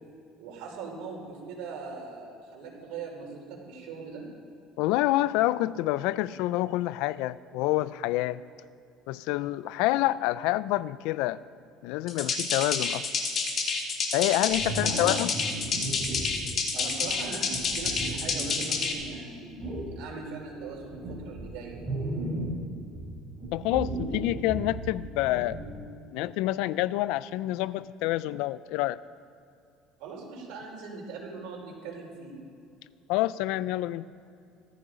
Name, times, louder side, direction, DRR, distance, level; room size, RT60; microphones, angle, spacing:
voice 1, 0.4-4.2 14.6-15.6 16.7-21.8 30.0-32.4, right 4 dB, 75° right, -1 dB, 4.8 m, -40 dB
voice 2, 4.8-8.4 9.1-11.4 11.8-13.1 14.1-15.3 23.5-25.6 26.1-29.0 33.1-34.1, left 16 dB, 75° left, 17 dB, 0.4 m, -27 dB
sound 1, 12.1-18.9, left 4 dB, 35° left, 1.9 m, -29 dB
sound 2, 14.5-16.4 17.0-19.1 19.6-19.9 20.5-22.6 22.9-25.8, right 1 dB, 15° right, 4.9 m, -36 dB
16.5 x 14.5 x 5.1 m, 2.5 s
cardioid pair, 145°, 0 cm